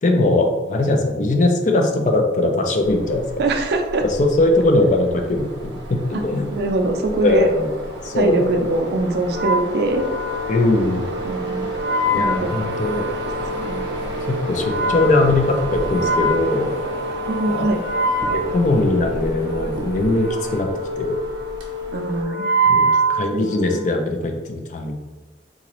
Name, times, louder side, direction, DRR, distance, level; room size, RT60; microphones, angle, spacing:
voice 1, 0.0-3.2 4.0-6.5 7.2-7.7 8.0-8.7 10.5-11.1 12.1-13.1 14.3-16.7 17.5-17.7 18.5-20.7 21.0-21.2 22.6-25.0, left 2 dB, 40° left, 4 dB, 0.4 m, -20 dB
sound 1, 2.8-22.2, right 1 dB, 90° right, 0.8 m, -34 dB
voice 2, 3.4-4.0 6.5-7.5 8.1-10.1 11.2-11.7 12.2-12.6 13.6-13.8 17.3-17.8 21.9-22.5 23.3-23.5 23.7-23.8, right 2 dB, 60° right, 4 dB, 0.4 m, -22 dB
Wind instrument woodwind instrument, 9.2-23.9, right 1 dB, 75° left, 0.8 m, -25 dB
sound 2, 12.0-20.6, equal, 20° left, 1.4 m, -40 dB
3.8 x 2.4 x 3.0 m, 1.2 s
head